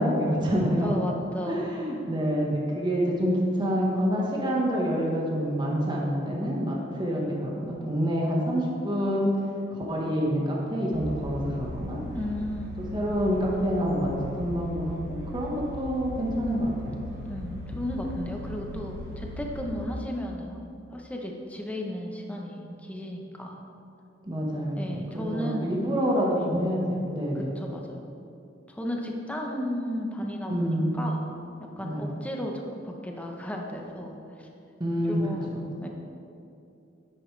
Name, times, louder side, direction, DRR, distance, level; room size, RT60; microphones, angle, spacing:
voice 1, 0.0-0.9 1.5-9.3 9.7-12.0 12.8-17.1 24.2-27.5 30.5-30.9 31.8-32.1 34.8-35.6, equal, 25° right, -3 dB, 1.2 m, -27 dB
voice 2, 0.8-1.6 12.1-12.8 17.2-20.6 20.9-23.6 24.8-25.7 26.4-26.5 27.5-28.0 28.7-30.7 30.9-31.2 31.8-34.5 35.1-35.5 35.8-35.9, equal, 5° left, 0 dB, 0.9 m, -34 dB
sound 1, 10.9-19.8, left 1 dB, 75° right, 2.3 m, -39 dB
9.9 x 8.4 x 3.3 m, 2.6 s
head